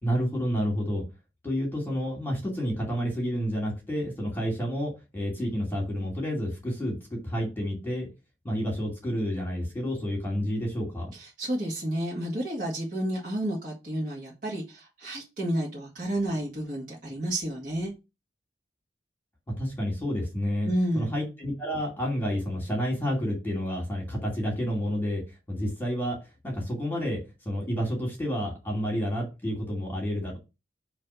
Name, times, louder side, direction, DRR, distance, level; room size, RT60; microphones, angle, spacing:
voice 1, 0.0-1.0 1.4-8.1 8.4-11.1 19.5-20.7 20.9-27.2 27.5-30.4, equal, 10° left, -2 dB, 2.5 m, -30 dB
voice 2, 11.1-17.9 20.6-21.1, right 1 dB, 50° right, -6 dB, 2.1 m, -31 dB
6.4 x 3.4 x 5.7 m, 0.27 s
head